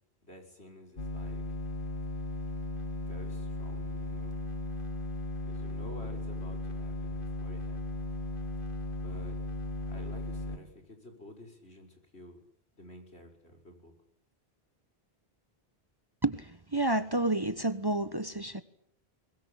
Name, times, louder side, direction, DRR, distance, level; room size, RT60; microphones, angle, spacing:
voice 1, 0.2-1.4 3.1-4.3 5.5-8.1 9.0-9.4 9.9-12.4 12.8-13.9, left 1 dB, 80° left, 3 dB, 5.6 m, -51 dB
sound 1, 1.0-10.6, left 2 dB, 55° left, 2.5 m, -36 dB
voice 2, 16.2-18.6, right 2 dB, 25° right, 12 dB, 1.1 m, -30 dB
23.0 x 21.5 x 8.8 m, 0.68 s
omnidirectional pair, 1.1 m